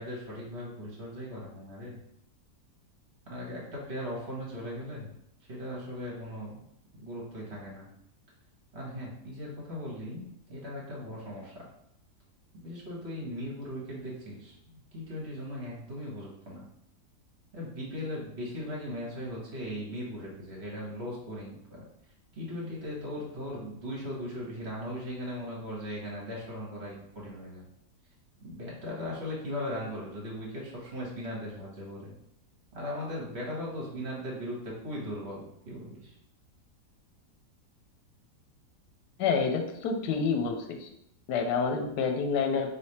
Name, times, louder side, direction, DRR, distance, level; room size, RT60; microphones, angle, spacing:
voice 1, 0.0-2.0 3.3-5.1 5.5-6.6 7.0-7.9 8.7-11.5 12.5-16.6 17.5-21.8 22.3-27.7 28.4-32.1 32.7-36.1, equal, 40° right, -5 dB, 1.4 m, -38 dB
voice 2, 39.2-40.9 41.3-42.7, left 5 dB, 80° left, 4 dB, 1.2 m, -28 dB
3.3 x 3.0 x 4.2 m, 0.79 s
omnidirectional pair, 1.8 m